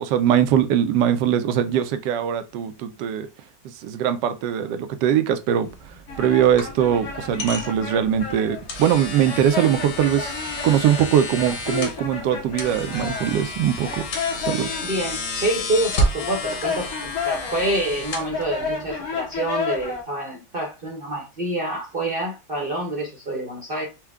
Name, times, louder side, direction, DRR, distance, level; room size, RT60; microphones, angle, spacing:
voice 1, 0.0-3.3 3.8-5.7 6.2-10.4 10.6-14.1 14.5-14.8, right 9 dB, 80° right, 1.2 m, -21 dB
sound 1, 5.6-18.9, left 1 dB, 80° left, 1.7 m, -31 dB
sound 2, 6.1-20.0, left 4 dB, 55° left, 1.3 m, -32 dB
voice 2, 14.8-23.8, right 1 dB, 40° right, 0.8 m, -27 dB
4.5 x 2.2 x 3.4 m
omnidirectional pair, 1.9 m